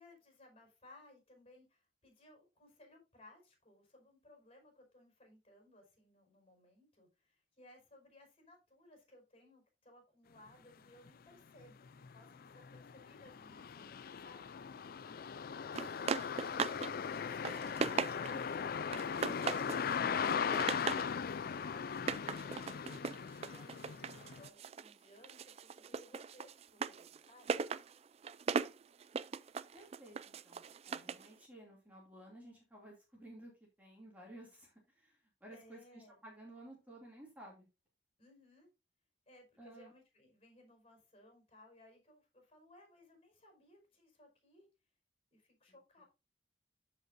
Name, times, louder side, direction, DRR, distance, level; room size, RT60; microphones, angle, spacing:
voice 1, 0.0-14.6 21.1-27.6 35.5-36.2 38.2-38.7 39.3-44.7 45.3-46.0, left 1 dB, 35° left, 3 dB, 5.0 m, -62 dB
sound 1, 11.1-11.2 11.6-24.5, left 6 dB, 55° left, 0.4 m, -39 dB
sound 2, 15.8-16.9 17.2-18.5 18.9-19.9 20.2-21.1 21.9-24.9 25.2-31.3, right 5 dB, 35° right, 0.4 m, -39 dB
voice 2, 29.7-37.7 39.6-39.9 45.7-46.0, right 1 dB, 10° right, -3 dB, 2.6 m, -55 dB
14.0 x 5.2 x 2.6 m, 0.27 s
head